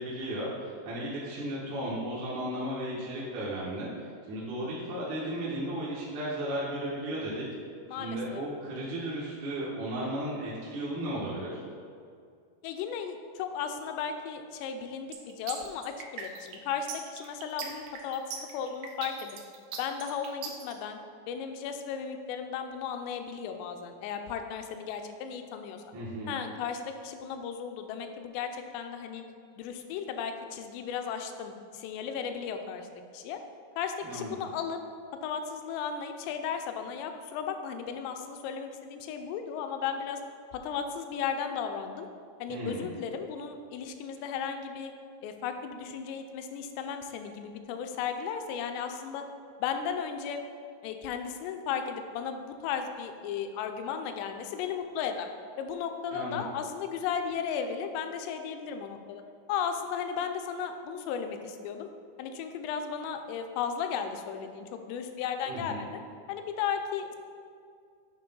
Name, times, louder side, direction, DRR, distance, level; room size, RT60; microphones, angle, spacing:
voice 1, 0.0-7.4 8.0-11.6 25.9-26.4 34.0-34.4 42.5-42.9 56.1-56.4 65.5-65.9, right 1 dB, 65° right, -8 dB, 2.0 m, -35 dB
voice 2, 7.9-8.4 12.6-19.4 19.8-21.0 21.3-25.8 26.3-29.2 29.6-32.9 33.1-33.4 33.8-34.8 35.2-40.2 40.5-42.1 42.4-44.9 45.2-49.2 49.6-50.4 50.8-55.3 55.6-59.2 59.5-61.9 62.2-65.9 66.3-67.2, left 7 dB, 85° left, 6 dB, 2.7 m, -35 dB
sound 1, 15.1-20.7, right 6 dB, 85° right, 2.8 m, -40 dB
9.1 x 3.1 x 5.3 m, 2.3 s
omnidirectional pair, 5.0 m